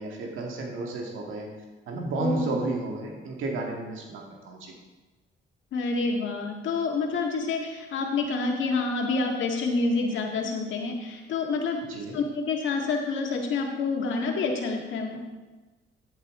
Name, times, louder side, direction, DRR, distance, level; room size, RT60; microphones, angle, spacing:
voice 1, 0.0-1.5 1.9-4.7 11.9-12.1, right 3 dB, 85° right, 0 dB, 1.9 m, -32 dB
voice 2, 5.7-11.8 12.1-15.2, left 3 dB, 75° left, 1 dB, 1.9 m, -28 dB
11.5 x 8.4 x 3.7 m, 1.2 s
cardioid pair, 90°, 20 cm